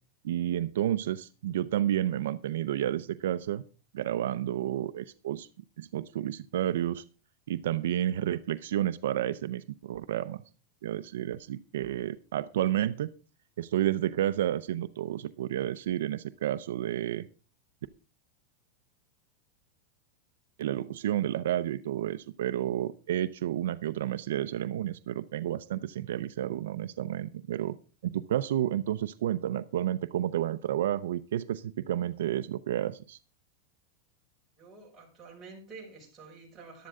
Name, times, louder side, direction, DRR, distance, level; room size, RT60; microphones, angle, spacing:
voice 1, 0.2-3.6 3.9-5.5 5.8-7.0 7.5-10.4 10.8-13.1 13.6-17.3 20.6-27.8 28.0-33.2, right 12 dB, 85° right, 12 dB, 0.7 m, -31 dB
voice 2, 34.6-36.9, right 4 dB, 10° right, -4 dB, 5.9 m, -48 dB
14.5 x 11.5 x 3.7 m, 0.34 s
supercardioid pair, 160°, 0 cm